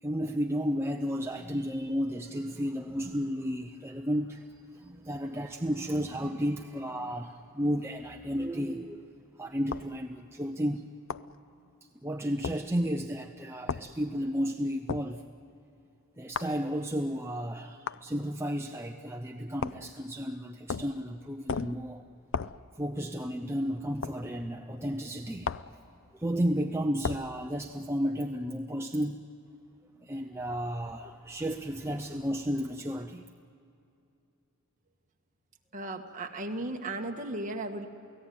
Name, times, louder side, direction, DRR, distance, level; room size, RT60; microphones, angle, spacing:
voice 1, 0.0-4.4 4.7-9.1 9.3-10.8 12.0-15.2 16.2-22.0 22.8-25.5 26.1-29.2 30.0-33.3, equal, 10° right, 3 dB, 0.6 m, -33 dB
sound 1, 9.7-9.9 11.1-11.3 12.4-12.6 13.7-13.9 14.9-15.1 16.3-16.6 17.9-18.0 19.6-19.9 20.7-21.0 21.5-21.8 22.3-22.6 24.0-24.2 25.4-25.7 27.0-27.3, left 5 dB, 60° left, 0.5 m, -34 dB
voice 2, 35.7-37.9, right 2 dB, 35° right, 2 dB, 1.7 m, -35 dB
29.0 x 17.5 x 9.4 m, 2.7 s
head